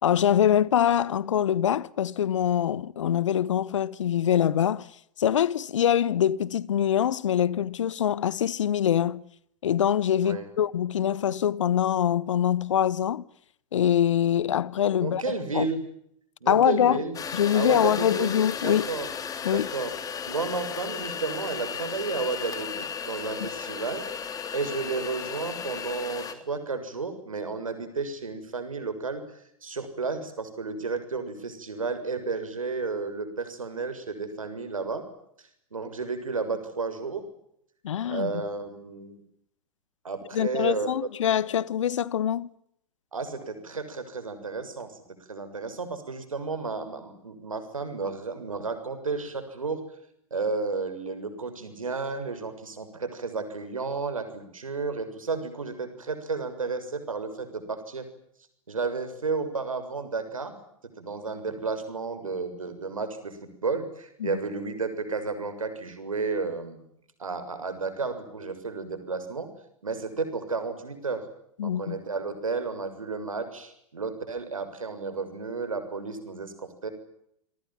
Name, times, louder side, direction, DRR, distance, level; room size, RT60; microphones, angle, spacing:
voice 1, 0.0-4.9 5.2-9.2 9.6-13.2 13.7-15.2 15.5-15.7 16.5-17.0 17.3-18.9 19.4-19.7 23.4-23.5 37.8-38.3 40.3-42.5 64.2-64.3 71.6-72.0, left 10 dB, 65° left, 1.3 m, -24 dB
voice 2, 15.0-15.8 16.4-17.2 17.5-18.4 18.6-19.1 19.5-19.9 20.3-24.0 24.5-35.0 35.4-37.2 38.1-39.2 40.0-40.9 43.1-45.0 45.3-49.8 50.3-58.1 58.7-60.5 61.0-66.8 67.2-69.5 69.8-71.2 71.6-76.9, right 4 dB, 75° right, 7.0 m, -32 dB
sound 1, 17.1-26.3, left 7 dB, 20° left, 3.2 m, -35 dB
28.0 x 23.0 x 7.6 m
figure-of-eight pair, 100°, 17 cm